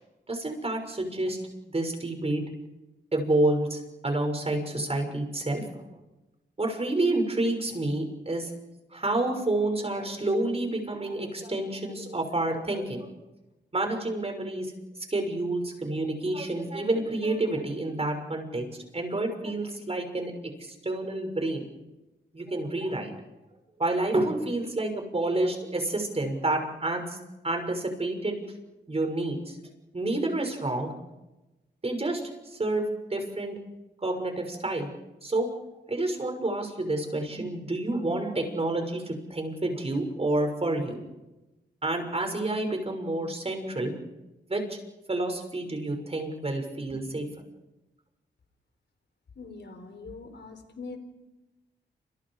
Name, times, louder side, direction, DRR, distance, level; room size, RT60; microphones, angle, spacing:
voice 1, 0.3-1.4 1.7-2.4 3.1-5.8 6.6-8.5 8.9-13.1 13.7-14.7 15.1-18.7 18.9-20.3 20.6-21.6 22.3-23.2 23.8-27.2 27.4-28.4 28.9-29.6 29.9-30.9 31.8-33.6 34.0-34.9 35.2-35.5 35.9-41.0 41.8-43.9 44.5-44.8 45.1-47.3, right 2 dB, 30° right, 4 dB, 6.5 m, -29 dB
voice 2, 49.4-51.0, left 3 dB, 70° left, 7 dB, 4.7 m, -42 dB
28.5 x 27.5 x 5.0 m, 1.0 s
wide cardioid pair, 90°, 19 cm